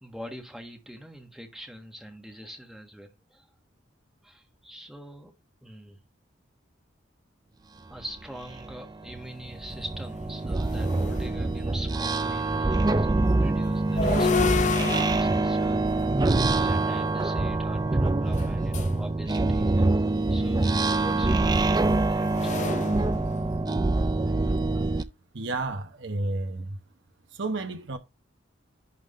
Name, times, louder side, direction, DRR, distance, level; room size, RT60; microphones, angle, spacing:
voice 1, 0.0-3.5 4.2-5.3 5.6-6.0 7.9-16.1 16.5-22.6, equal, ahead, 1.5 m, -43 dB
sound 1, 8.0-8.1 8.5-25.0, right 2 dB, 20° right, 0.4 m, -25 dB
sound 2, 9.4-9.5 9.9-11.9 13.7-17.0 18.3-19.0 20.5-23.9, left 5 dB, 40° left, 0.7 m, -32 dB
voice 2, 25.3-26.8 27.3-28.0, right 2 dB, 70° right, 0.9 m, -31 dB
11.0 x 3.7 x 3.7 m
head